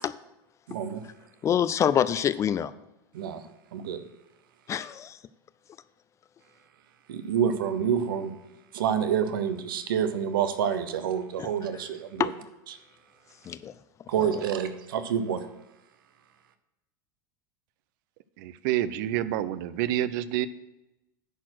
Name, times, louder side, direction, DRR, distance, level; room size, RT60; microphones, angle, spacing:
voice 1, 0.7-1.0 3.1-3.4 3.7-4.0 7.1-8.3 8.7-12.3 14.1-15.5, right 8 dB, 85° right, 11 dB, 0.8 m, -28 dB
voice 2, 1.4-2.7 4.7-5.2 11.4-11.5 12.2-12.3 13.5-13.7 14.2-14.3, left 9 dB, 25° left, 16 dB, 0.4 m, -26 dB
voice 3, 18.4-20.5, right 13 dB, 65° right, 16 dB, 0.5 m, -28 dB
10.0 x 4.5 x 6.2 m, 0.95 s
supercardioid pair, 115°, 11 cm